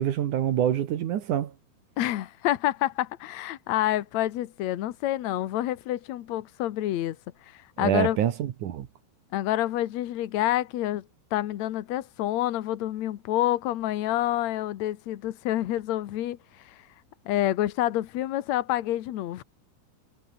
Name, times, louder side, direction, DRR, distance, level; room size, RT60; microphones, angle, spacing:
voice 1, 0.0-1.5 7.8-8.9, right 10 dB, 60° right, 2.4 m, -26 dB
voice 2, 2.0-7.2 7.4-8.2 9.3-11.0 11.3-16.9 17.3-19.4, left 14 dB, 75° left, 1.6 m, -28 dB
omnidirectional pair, 4.7 m